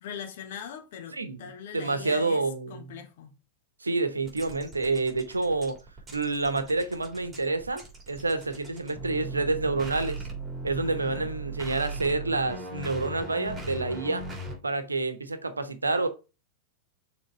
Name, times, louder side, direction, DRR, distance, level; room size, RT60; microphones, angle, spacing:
voice 1, 0.0-2.4 2.7-3.3 10.8-11.3, left 8 dB, 55° left, 1.3 m, -41 dB
voice 2, 1.7-2.9 3.8-5.8 6.1-10.2 10.6-14.2 14.6-16.1, right 3 dB, 80° right, 0.9 m, -28 dB
sound 1, 4.3-14.6, right 2 dB, 15° right, 3.0 m, -38 dB
6.5 x 3.7 x 4.7 m
figure-of-eight pair, 90°, 0 cm